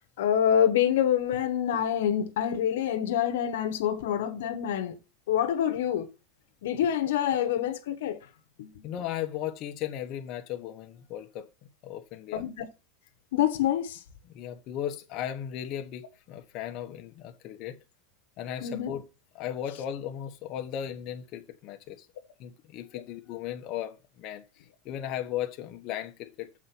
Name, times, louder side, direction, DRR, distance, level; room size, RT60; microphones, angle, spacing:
voice 1, 0.2-4.9 5.3-6.1 6.6-8.2 8.6-8.7 12.3-12.6 13.3-14.0 18.6-18.9, left 10 dB, 90° left, 1.1 m, -26 dB
voice 2, 8.8-11.5 11.8-12.4 14.3-17.8 18.4-19.1 19.3-22.0 22.4-26.5, left 10 dB, 45° left, 1.0 m, -36 dB
7.4 x 4.2 x 6.0 m
supercardioid pair, 140°, 0 cm